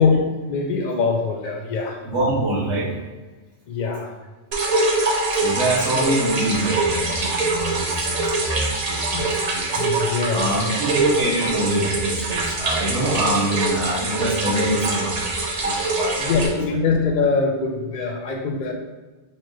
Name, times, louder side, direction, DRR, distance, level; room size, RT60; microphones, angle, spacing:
voice 1, 0.0-2.0 3.7-4.1 9.1-9.3 9.8-10.8 16.2-18.7, left 4 dB, 50° left, 2 dB, 0.6 m, -23 dB
voice 2, 2.0-3.0 5.3-9.8 10.3-15.3 15.6-16.4, right 1 dB, 75° right, -7 dB, 1.2 m, -25 dB
sound 1, 4.5-16.5, right 2 dB, 45° right, 0.5 m, -24 dB
4.4 x 2.5 x 3.0 m, 1.2 s
omnidirectional pair, 1.2 m